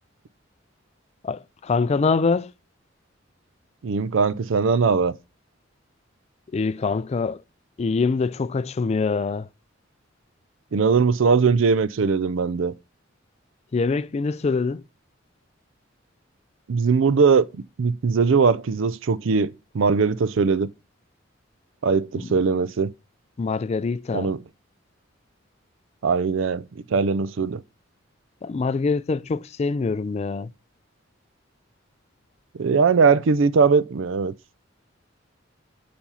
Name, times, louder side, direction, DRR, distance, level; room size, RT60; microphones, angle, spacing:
voice 1, 1.2-2.5 6.5-7.4 7.8-9.5 13.7-14.8 22.1-22.3 23.4-24.3 28.4-30.5, left 4 dB, 35° left, 0.3 m, -24 dB
voice 2, 3.8-5.1 10.7-12.7 16.7-17.5 17.8-20.7 21.8-22.9 24.1-24.4 26.0-27.6 32.6-34.3, right 5 dB, 70° right, 0.5 m, -20 dB
7.2 x 5.1 x 5.6 m
head